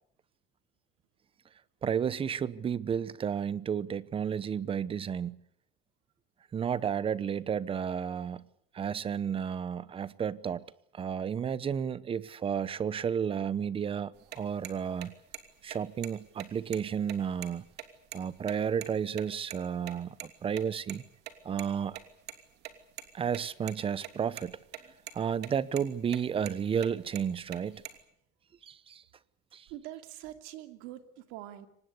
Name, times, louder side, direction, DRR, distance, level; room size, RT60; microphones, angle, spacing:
voice 1, 1.8-5.4 6.5-8.5 8.7-10.7 10.9-15.1 15.6-17.6 18.1-21.0 21.4-22.0 23.1-24.5 25.1-27.8 28.6-29.0 29.5-29.7, right 7 dB, 25° right, 1.0 m, -32 dB
sound 1, 14.2-19.2 19.5-19.6 19.9-20.0 20.2-20.3 20.6-20.7 20.9-21.0 21.3-22.3 22.6-23.1 23.3-24.1 24.4-24.8 25.1-25.5 25.8-25.9 26.1-26.5 26.8-28.0, right 13 dB, 55° right, 2.9 m, -42 dB
voice 2, 29.7-31.7, right 14 dB, 80° right, 2.7 m, -44 dB
24.5 x 19.5 x 8.4 m
cardioid pair, 140°, 20 cm